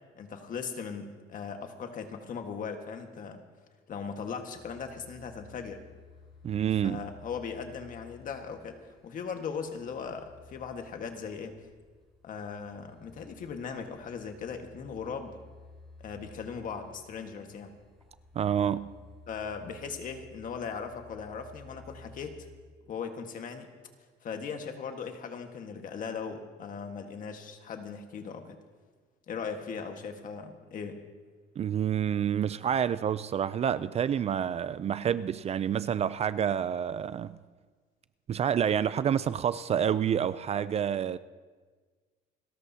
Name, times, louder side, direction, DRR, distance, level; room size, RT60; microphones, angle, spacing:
voice 1, 0.1-3.4 3.9-5.8 6.8-8.8 9.0-11.6 12.2-15.4 16.0-17.7 19.3-22.5 22.9-23.7 24.2-28.6 29.3-31.0, left 6 dB, 50° left, 1.6 m, -38 dB
sound 1, 4.5-22.6, left 3 dB, 5° left, 4.4 m, -55 dB
voice 2, 6.4-7.0 18.4-18.9 31.6-37.4 38.3-41.2, right 9 dB, 40° right, 0.4 m, -28 dB
28.5 x 13.5 x 2.8 m
cardioid pair, 110°, 17 cm